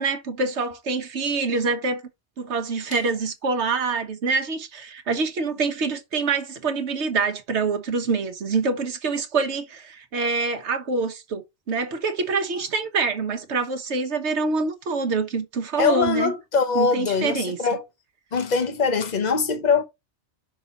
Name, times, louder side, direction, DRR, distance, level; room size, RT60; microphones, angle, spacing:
voice 1, 0.0-2.0 2.4-16.3 16.7-17.6, right 4 dB, 85° right, 1.4 m, -25 dB
voice 2, 15.8-17.8 18.3-19.8, left 5 dB, 40° left, 1.2 m, -22 dB
6.1 x 4.1 x 5.0 m
omnidirectional pair, 1.1 m